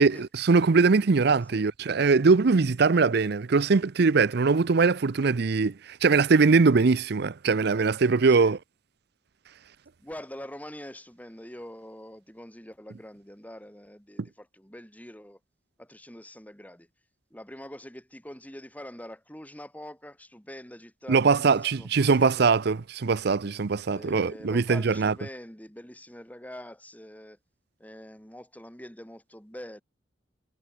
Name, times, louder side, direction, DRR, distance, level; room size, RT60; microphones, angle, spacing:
voice 1, 0.0-8.6 14.2-14.3 21.1-25.1, right 4 dB, 60° right, 0.6 m, -22 dB
voice 2, 10.0-15.4 15.8-16.9 17.3-22.5 23.9-27.4 27.8-29.8, left 1 dB, 10° left, 6.2 m, -44 dB
head